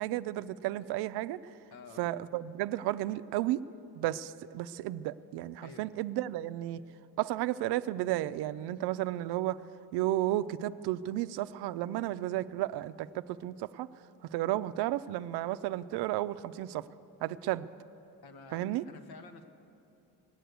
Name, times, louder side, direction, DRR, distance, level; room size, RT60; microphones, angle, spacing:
voice 1, 0.0-1.5 2.0-3.6 4.0-6.8 7.2-9.6 9.9-13.9 14.3-16.8 17.2-17.7 18.5-18.8, right 15 dB, 80° right, 13 dB, 0.5 m, -33 dB
voice 2, 1.7-2.1 5.6-6.0 18.2-19.4, left 4 dB, 70° left, 7 dB, 1.3 m, -51 dB
19.5 x 7.8 x 8.2 m, 2.8 s
cardioid pair, 85°, 39 cm